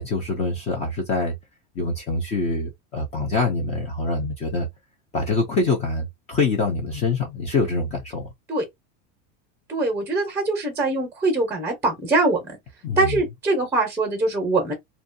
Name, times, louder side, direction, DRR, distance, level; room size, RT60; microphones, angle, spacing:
voice 1, 0.0-1.3 1.8-4.7 5.1-8.3 12.8-13.2, left 3 dB, 20° left, 0.3 m, -25 dB
voice 2, 9.7-12.4 13.0-14.7, right 2 dB, 5° right, 0.7 m, -22 dB
2.5 x 2.3 x 2.5 m
supercardioid pair, 165°, 40 cm